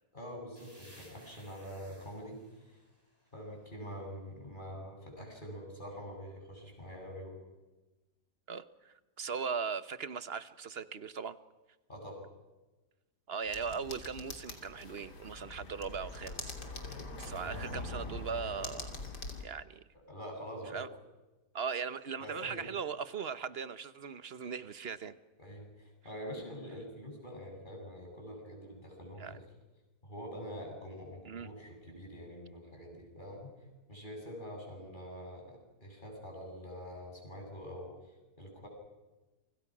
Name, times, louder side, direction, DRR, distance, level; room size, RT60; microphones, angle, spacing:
voice 1, 0.1-2.8 3.3-7.4 11.9-12.2 17.4-17.6 20.1-20.9 22.2-22.7 25.4-29.4 30.0-38.7, equal, 30° left, 1 dB, 7.9 m, -45 dB
sound 1, 0.6-4.2, equal, 15° right, 6.6 m, -60 dB
voice 2, 8.5-11.4 13.3-16.6 16.8-19.0 19.4-19.8 20.7-20.9 21.5-25.1 29.2-29.3 31.3-31.5, right 6 dB, 45° right, 13 dB, 1.1 m, -39 dB
sound 2, 13.4-19.4, left 2 dB, 85° left, 3.6 m, -43 dB
29.5 x 25.0 x 6.2 m, 1.1 s
omnidirectional pair, 1.7 m